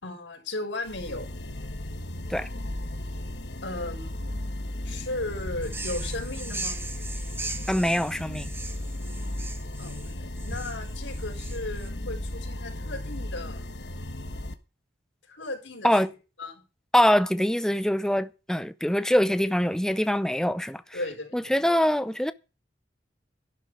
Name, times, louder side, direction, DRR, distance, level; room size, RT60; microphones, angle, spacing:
voice 1, 0.0-1.3 3.6-4.5 4.8-6.8 9.8-13.7 15.3-16.0 16.4-16.6 20.9-21.5, left 2 dB, 85° left, 4.8 m, -36 dB
sound 1, 0.8-14.5, left 1 dB, 70° left, 1.4 m, -35 dB
sound 2, 5.6-11.9, right 3 dB, 15° right, 1.1 m, -39 dB
voice 2, 7.7-8.5 15.8-16.1 16.9-21.0 21.3-22.3, equal, 5° left, 0.6 m, -24 dB
13.5 x 11.5 x 4.9 m
head